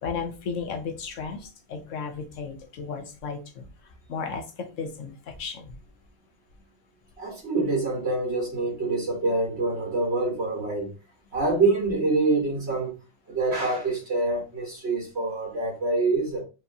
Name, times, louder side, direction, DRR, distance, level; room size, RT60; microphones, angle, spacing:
voice 1, 0.0-3.7 4.1-5.8, left 5 dB, 75° left, 1.1 m, -34 dB
voice 2, 7.2-10.9 11.3-12.9 13.3-16.4, right 3 dB, 55° right, 1.9 m, -26 dB
4.7 x 3.1 x 2.7 m
omnidirectional pair, 1.3 m